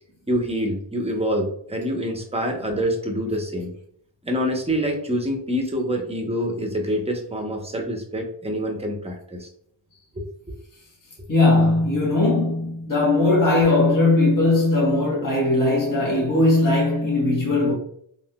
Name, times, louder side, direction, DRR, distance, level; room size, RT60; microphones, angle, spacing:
voice 1, 0.3-3.7 4.2-9.5 10.2-10.3, equal, 15° right, 0.8 m, -26 dB
voice 2, 11.3-17.7, left 2 dB, 45° left, 1.3 m, -19 dB
3.6 x 2.6 x 2.2 m
cardioid pair, 55°, 46 cm